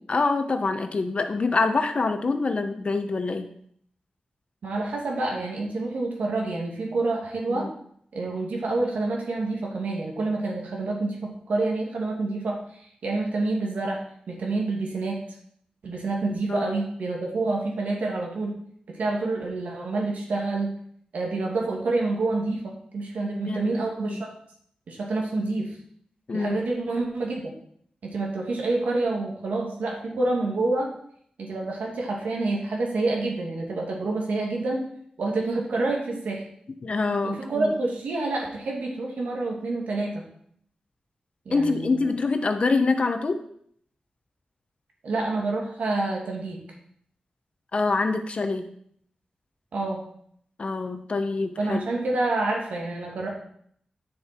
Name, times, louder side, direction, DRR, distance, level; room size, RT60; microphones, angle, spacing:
voice 1, 0.1-3.5 7.5-7.7 16.5-16.7 23.5-23.7 24.1-24.2 26.3-26.6 36.8-37.7 41.5-43.4 47.7-48.6 50.6-51.8, left 3 dB, 50° left, 7 dB, 1.1 m, -25 dB
voice 2, 4.6-7.7 8.1-14.0 14.3-15.2 15.8-18.5 18.9-20.7 21.1-24.3 24.9-25.7 26.3-27.5 28.0-30.9 31.4-34.8 35.2-36.4 37.2-40.2 41.5-42.1 45.0-46.6 49.7-50.0 51.6-53.3, right 2 dB, 90° right, -1 dB, 2.5 m, -28 dB
9.3 x 6.9 x 4.5 m, 0.65 s
wide cardioid pair, 85°, 2 cm